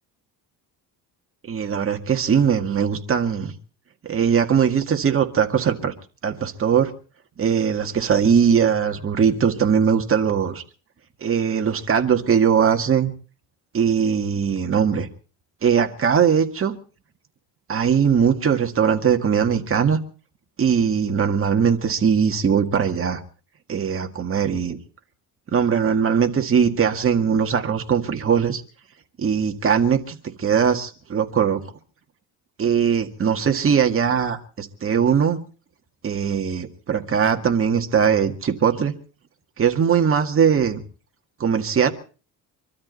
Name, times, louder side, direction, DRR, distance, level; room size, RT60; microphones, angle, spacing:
voice 1, 1.5-3.5 4.0-5.9 6.2-6.9 7.4-10.6 11.2-13.1 13.7-15.1 15.6-16.7 17.7-20.0 20.6-23.2 23.7-24.8 25.5-28.6 29.2-31.6 32.6-35.4 36.0-38.9 39.6-40.8 41.4-41.9, right 7 dB, 35° right, 2.0 m, -20 dB
25.0 x 13.0 x 4.1 m
cardioid pair, 130°, 38 cm